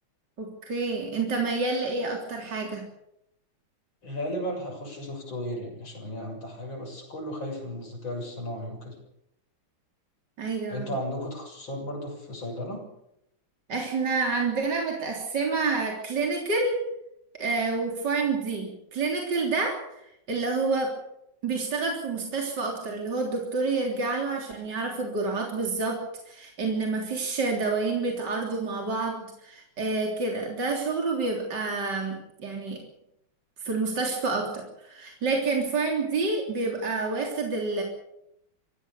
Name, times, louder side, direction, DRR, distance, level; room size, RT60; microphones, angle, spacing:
voice 1, 0.4-2.8 10.4-10.9 13.7-16.8 17.4-20.0 20.3-20.9 21.4-26.0 26.3-32.8 33.6-37.8, right 3 dB, 55° right, 0 dB, 4.1 m, -28 dB
voice 2, 4.0-9.0 10.7-12.9, equal, 65° left, 2 dB, 7.7 m, -35 dB
24.5 x 16.5 x 6.9 m, 0.79 s
omnidirectional pair, 2.2 m